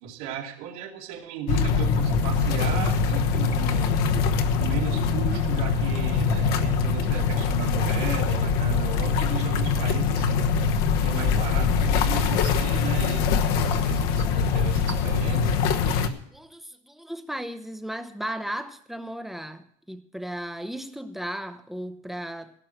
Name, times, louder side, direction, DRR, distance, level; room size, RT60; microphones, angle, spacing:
voice 1, 0.0-4.1 4.6-10.6 11.0-13.3 13.6-15.5, right 8 dB, 80° right, 2.5 m, -36 dB
sound 1, 1.5-16.1, left 5 dB, 65° left, 1.1 m, -23 dB
voice 2, 15.9-22.5, equal, ahead, 0.7 m, -36 dB
16.5 x 6.2 x 7.7 m
cardioid pair, 160°, 18 cm